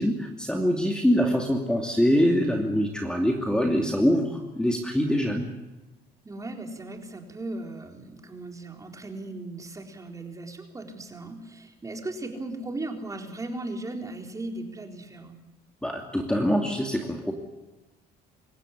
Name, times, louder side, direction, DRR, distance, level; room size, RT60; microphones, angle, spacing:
voice 1, 0.0-5.5 15.8-17.3, equal, 5° left, 2 dB, 2.7 m, -24 dB
voice 2, 6.2-15.4, right 2 dB, 20° right, 3 dB, 4.1 m, -37 dB
26.0 x 15.0 x 10.0 m, 1.1 s
cardioid pair, 110°, 17 cm